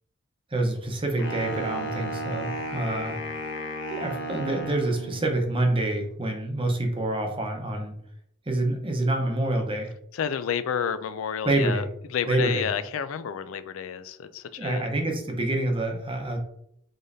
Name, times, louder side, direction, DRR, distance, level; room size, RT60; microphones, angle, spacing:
voice 1, 0.5-3.2 3.9-7.9 8.5-9.9 11.4-11.9 12.3-12.7 14.6-16.4, right 2 dB, 25° right, 3 dB, 0.8 m, -27 dB
Wind instrument woodwind instrument, 1.2-5.4, equal, 60° left, 0.8 m, -34 dB
voice 2, 10.1-11.8 12.1-14.9, left 8 dB, 80° left, 12 dB, 0.4 m, -30 dB
5.1 x 3.9 x 2.6 m, 0.70 s
head